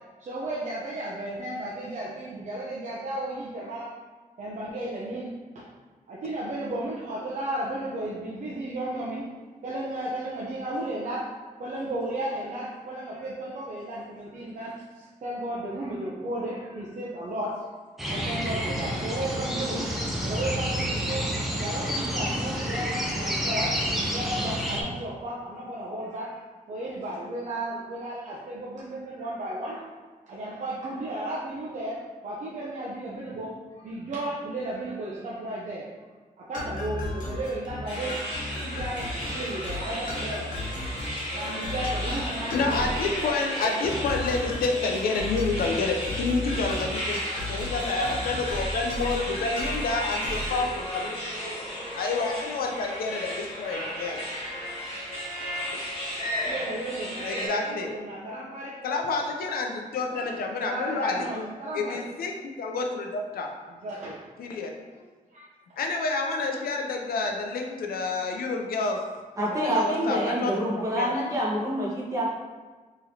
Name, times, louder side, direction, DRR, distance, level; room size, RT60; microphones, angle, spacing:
voice 1, 0.2-3.9 4.4-5.7 6.1-9.3 9.6-11.3 11.6-23.7 24.0-29.9 30.3-33.6 33.8-35.9 36.4-40.9 41.3-43.8 56.4-58.8 60.1-62.0 63.7-64.3 64.5-64.7 65.3-65.5, right 1 dB, 55° right, -5 dB, 0.6 m, -34 dB
sound 1, 18.0-24.8, equal, ahead, 0.5 m, -29 dB
sound 2, 36.5-50.6, left 1 dB, 60° left, 0.8 m, -35 dB
sound 3, 37.9-57.5, equal, 40° left, 1.1 m, -34 dB
voice 2, 42.5-47.2 47.5-51.2 51.9-54.2 55.7-55.8 57.2-57.9 58.8-61.5 61.7-63.5 64.4-64.7 65.8-69.0 69.5-71.1, left 3 dB, 90° left, 2 dB, 0.5 m, -29 dB
voice 3, 69.4-72.3, equal, 20° right, -6 dB, 1.0 m, -27 dB
3.9 x 3.0 x 2.7 m, 1.4 s
wide cardioid pair, 125°, 15 cm